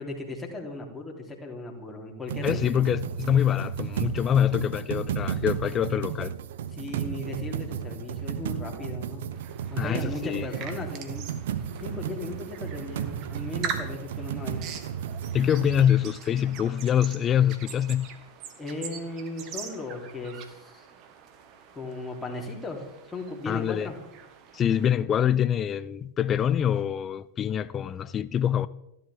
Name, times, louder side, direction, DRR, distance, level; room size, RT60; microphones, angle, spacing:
voice 1, 0.0-2.7 6.7-9.3 9.7-11.3 11.7-14.7 18.6-20.9 21.7-24.0, left 2 dB, 10° left, 3.4 m, -37 dB
sound 1, 2.3-15.8, right 9 dB, 55° right, 0.9 m, -33 dB
voice 2, 2.4-6.3 9.8-10.5 15.3-18.1 23.5-23.9 24.5-28.7, left 9 dB, 25° left, 0.5 m, -25 dB
sound 2, 9.3-24.9, right 7 dB, 40° right, 1.7 m, -43 dB
29.5 x 11.0 x 3.7 m
figure-of-eight pair, 90°, 0 cm